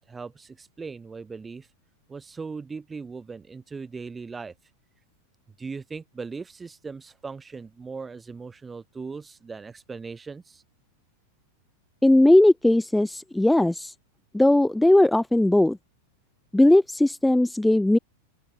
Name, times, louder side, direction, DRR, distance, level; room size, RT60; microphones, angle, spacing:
voice 1, 0.0-1.7 2.1-4.5 5.6-10.6, right 4 dB, 15° right, 5.7 m, -39 dB
voice 2, 12.0-13.9 14.3-15.8 16.5-18.0, left 1 dB, 5° left, 2.1 m, -18 dB
open air
figure-of-eight pair, 90°, 0 cm